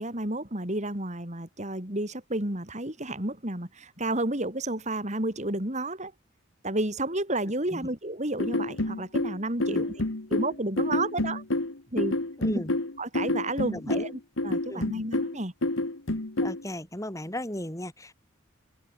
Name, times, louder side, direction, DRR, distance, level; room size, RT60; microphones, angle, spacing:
voice 1, 0.0-6.1 6.6-9.9 10.3-11.4 11.9-12.2 13.0-14.1 14.4-15.5, right 2 dB, 35° right, 3.9 m, -31 dB
sound 1, 8.4-16.6, left 2 dB, 70° left, 1.8 m, -28 dB
voice 2, 12.4-12.7 13.7-14.0 14.7-14.9 16.4-18.1, left 1 dB, 15° left, 4.3 m, -35 dB
open air
head